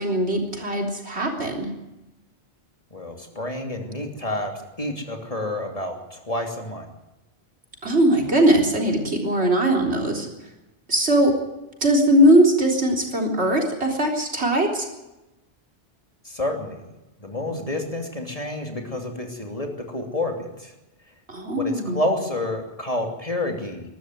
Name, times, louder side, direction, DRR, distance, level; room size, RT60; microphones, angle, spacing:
voice 1, 0.0-1.7 7.8-10.3 10.9-11.4 11.8-14.9 21.3-22.1, right 1 dB, 70° right, 2 dB, 4.1 m, -20 dB
voice 2, 2.9-4.5 4.8-6.9 16.2-16.8 17.2-20.7 21.6-23.8, left 1 dB, 30° left, 3 dB, 3.0 m, -29 dB
22.0 x 13.0 x 9.4 m, 0.98 s
omnidirectional pair, 1.2 m